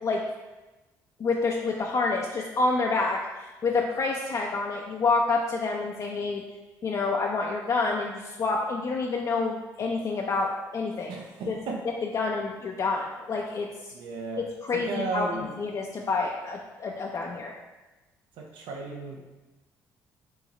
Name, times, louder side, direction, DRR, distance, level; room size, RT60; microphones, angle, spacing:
voice 1, 1.2-6.4 6.8-11.2 11.5-11.6 11.8-13.9 14.4-17.6, left 3 dB, 45° left, -1 dB, 0.5 m, -28 dB
voice 2, 11.1-11.8 13.9-14.5 14.7-15.5 18.4-19.2, right 3 dB, 80° right, 1 dB, 0.7 m, -34 dB
5.6 x 2.7 x 3.2 m, 1.1 s
supercardioid pair, 60°, 8 cm